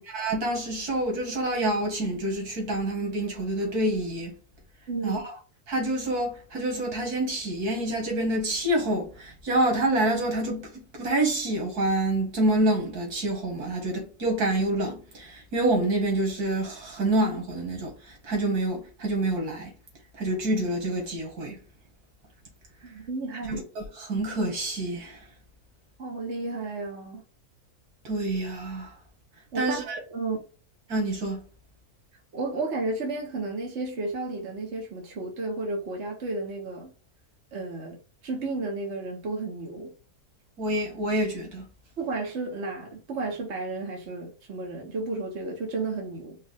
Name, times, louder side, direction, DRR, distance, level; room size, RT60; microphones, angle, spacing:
voice 1, 0.1-4.3 5.0-5.3 5.7-19.7 20.1-21.6 23.5-25.2 28.0-28.9 29.5-30.0 30.9-31.4 40.6-41.7, right 1 dB, 85° right, 2.1 m, -27 dB
voice 2, 4.9-5.2 22.8-23.6 26.0-27.2 29.5-30.4 32.3-36.9 37.5-38.0 38.2-39.9 42.0-46.4, right 3 dB, 50° right, 1.4 m, -32 dB
5.2 x 2.4 x 3.6 m
omnidirectional pair, 1.6 m